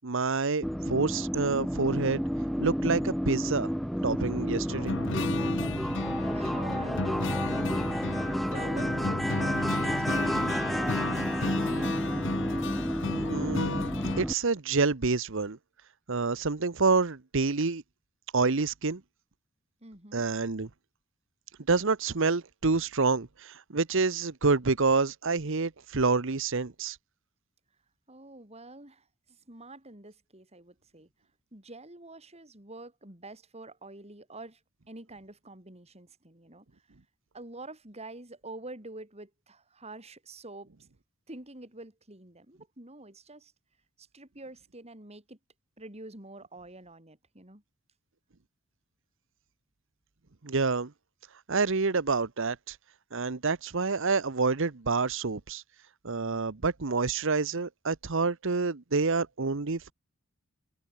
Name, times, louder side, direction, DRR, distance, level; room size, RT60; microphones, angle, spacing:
voice 1, 0.0-2.2 2.6-3.7 4.0-4.9 13.3-13.8 14.2-15.6 16.1-17.8 18.3-19.0 20.1-20.7 21.7-27.0 50.4-50.9 51.5-52.8 53.1-55.6 56.0-59.9, right 4 dB, 65° right, 1.0 m, -27 dB
sound 1, 0.6-14.3, equal, ahead, 1.3 m, -30 dB
sound 2, 4.7-14.2, left 3 dB, 60° left, 1.1 m, -34 dB
voice 2, 6.3-11.6 19.8-20.2 28.1-31.1 31.5-34.6 34.9-36.6 37.3-40.7 41.3-43.5 44.0-45.4 45.8-47.6, right 2 dB, 30° right, 4.7 m, -47 dB
head